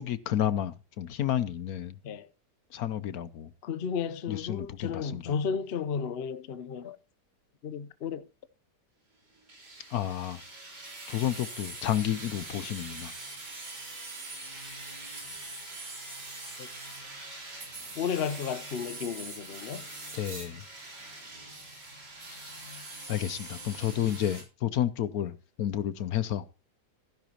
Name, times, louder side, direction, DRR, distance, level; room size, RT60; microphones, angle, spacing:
voice 1, 0.0-1.9 2.7-3.5 4.3-5.2 9.9-10.4 11.1-13.1 20.1-20.6 23.1-26.4, left 11 dB, 65° left, 1.1 m, -31 dB
voice 2, 3.6-7.0 7.6-8.2 16.6-16.7 18.0-19.9, left 6 dB, 50° left, 0.8 m, -33 dB
sound 1, 9.5-24.4, right 2 dB, 90° right, 4.4 m, -43 dB
15.0 x 10.0 x 2.9 m
omnidirectional pair, 1.8 m